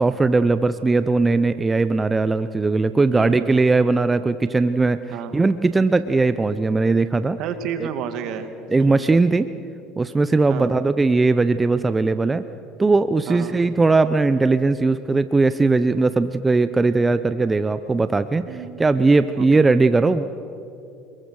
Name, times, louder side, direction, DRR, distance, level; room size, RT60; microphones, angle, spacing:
voice 1, 0.0-5.0 5.3-7.4 7.8-7.9 8.7-9.5 10.0-12.4 12.8-20.2, right 3 dB, 20° right, 12 dB, 0.7 m, -19 dB
voice 2, 3.0-3.6 5.1-5.4 7.4-8.5 8.8-9.0 10.5-10.8 13.3-13.6 18.4-18.8 19.4-19.6, right 8 dB, 65° right, 8 dB, 2.4 m, -31 dB
27.0 x 22.0 x 6.5 m, 2.7 s
supercardioid pair, 90°, 0 cm